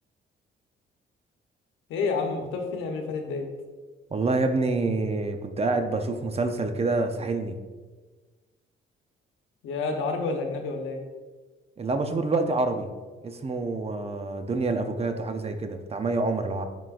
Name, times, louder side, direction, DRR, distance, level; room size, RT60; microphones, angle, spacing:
voice 1, 1.9-3.5 9.6-11.0, left 4 dB, 85° left, 4 dB, 0.9 m, -29 dB
voice 2, 4.1-7.5 11.8-12.9 13.2-16.6, right 3 dB, 30° right, 7 dB, 0.6 m, -27 dB
10.0 x 3.8 x 2.5 m, 1.3 s
cardioid pair, 90°, 20 cm